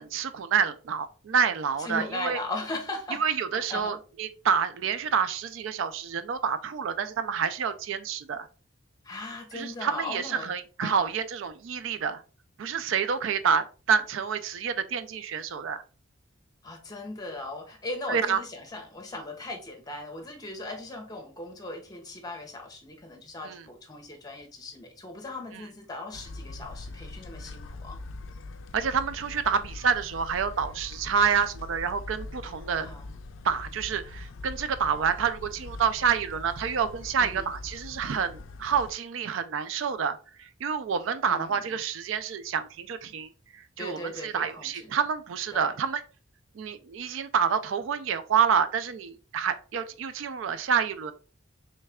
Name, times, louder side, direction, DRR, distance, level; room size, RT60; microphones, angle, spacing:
voice 1, 0.0-2.4 3.2-8.5 9.5-12.2 12.6-15.8 18.1-18.4 23.4-23.7 25.5-25.6 28.7-32.9 33.4-46.0 46.5-51.1, right 6 dB, 75° right, 0.4 m, -28 dB
voice 2, 1.8-3.2 3.5-4.0 9.0-10.5 10.8-11.1 16.6-28.0 32.8-33.1 37.2-37.5 41.3-41.6 43.8-44.9 45.5-45.7, left 2 dB, 20° left, 0.9 m, -38 dB
sound 1, 26.1-38.9, left 3 dB, 70° left, 0.4 m, -42 dB
3.2 x 3.2 x 3.4 m
head